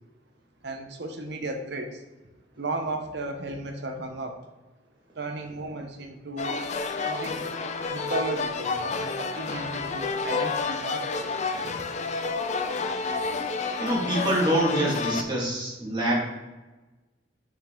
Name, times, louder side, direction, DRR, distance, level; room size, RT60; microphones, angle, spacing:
voice 1, 0.6-2.0 2.6-4.4 5.2-6.6 7.1-7.4 7.9-11.8, right 2 dB, 65° right, 5 dB, 0.8 m, -35 dB
sound 1, 6.4-15.2, left 4 dB, 40° left, 0.4 m, -30 dB
voice 2, 13.8-16.3, right 1 dB, 25° right, -4 dB, 1.8 m, -25 dB
6.2 x 4.6 x 3.6 m, 1.1 s
head